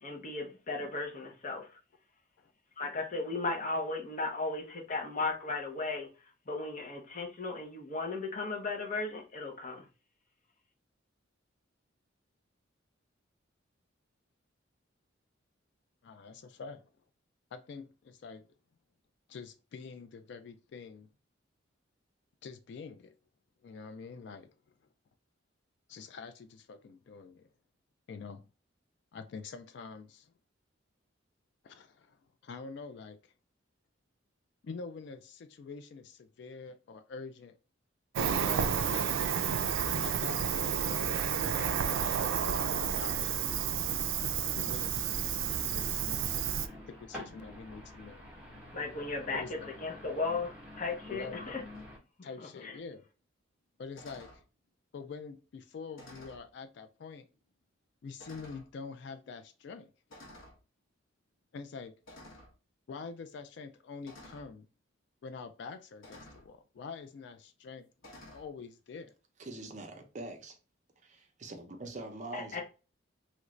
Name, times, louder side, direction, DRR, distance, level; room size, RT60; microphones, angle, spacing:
voice 1, 0.0-1.7 2.8-6.1 6.5-9.8 48.7-51.6 52.2-52.3 52.6-52.8 72.3-72.6, left 3 dB, 40° left, 0.8 m, -36 dB
voice 2, 16.0-16.9 17.5-18.5 19.3-21.1 22.4-23.1 23.6-24.5 25.9-27.5 28.1-28.5 29.1-30.3 31.6-33.3 34.6-37.6 38.4-39.1 40.0-43.7 44.5-46.2 46.9-48.2 49.3-49.7 51.1-51.5 52.2-53.0 53.8-54.4 54.9-57.3 58.0-59.9 61.5-61.9 62.9-64.7 65.2-67.9 68.3-69.1, left 5 dB, 60° left, 0.3 m, -46 dB
Cricket, 38.1-46.7, right 8 dB, 80° right, 0.3 m, -31 dB
sound 1, 43.8-52.0, left 1 dB, 5° right, 0.9 m, -49 dB
sound 2, 51.7-51.9 53.9-54.4 55.9-56.5 57.3-57.4 58.2-58.7 60.1-60.6 62.1-62.5 64.0-64.5 66.0-66.5 68.0-68.5, left 1 dB, 85° left, 0.9 m, -52 dB
voice 3, 69.4-70.6 71.0-72.6, right 2 dB, 35° right, 0.6 m, -44 dB
3.1 x 2.5 x 3.1 m
head